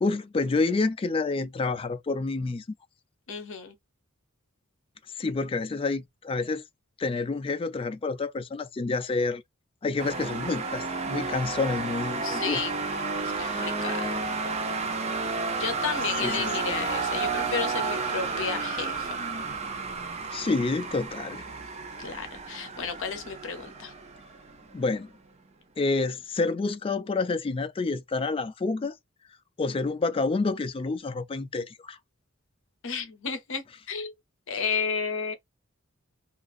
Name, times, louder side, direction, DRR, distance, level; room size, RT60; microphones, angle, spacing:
voice 1, 0.0-2.6 5.2-6.6 7.0-9.4 9.8-12.6 13.2-13.7 16.2-16.5 20.3-21.4 24.7-25.1 25.8-28.9 29.6-32.0, left 3 dB, 25° left, 0.3 m, -28 dB
voice 2, 3.3-3.8 12.2-12.7 13.4-14.2 15.5-19.3 22.0-23.9 32.8-34.1 34.5-35.3, left 5 dB, 65° left, 0.7 m, -32 dB
sound 1, 10.0-24.8, right 4 dB, 30° right, 0.6 m, -32 dB
2.8 x 2.4 x 2.4 m
head